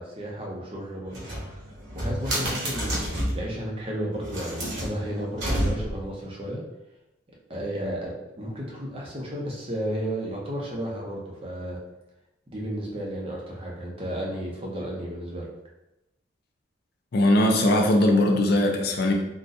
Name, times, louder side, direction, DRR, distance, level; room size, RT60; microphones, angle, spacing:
voice 1, 0.0-1.6 1.9-6.6 7.5-11.8 12.5-15.5, equal, 30° right, -3 dB, 0.7 m, -33 dB
sound 1, 1.1-3.5 4.1-6.1, equal, 60° right, 1.1 m, -29 dB
voice 2, 17.1-19.1, left 1 dB, 50° left, 1 dB, 0.4 m, -20 dB
3.8 x 2.3 x 2.6 m, 0.90 s
head